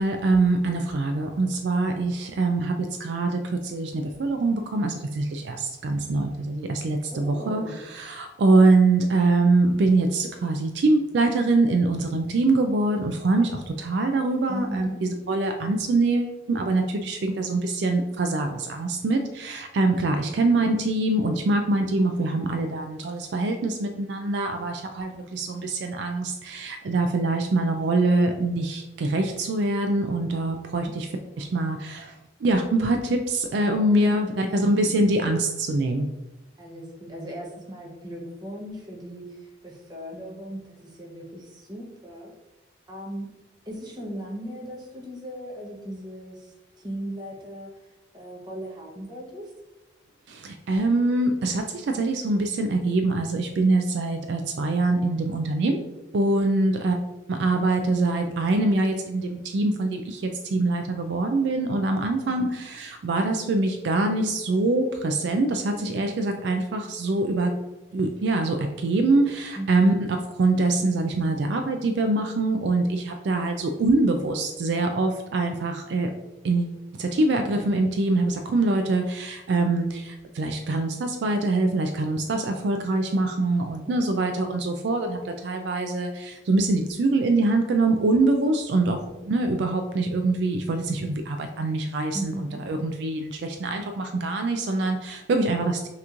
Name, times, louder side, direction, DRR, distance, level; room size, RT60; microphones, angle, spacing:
voice 1, 0.0-31.1 31.4-32.1 32.4-36.1 50.3-55.8 56.1-57.0 57.3-67.5 67.9-69.9 70.4-76.1 76.4-89.0 89.2-95.9, right 2 dB, 65° right, 5 dB, 0.3 m, -24 dB
voice 2, 7.1-7.8 14.5-15.0 20.1-20.4 33.9-34.7 36.6-42.3 42.9-43.3 43.7-49.5 62.0-62.4 69.6-70.0 83.8-84.2 92.1-92.6, right 1 dB, 20° right, -2 dB, 0.9 m, -38 dB
5.8 x 3.0 x 2.5 m, 1.0 s
head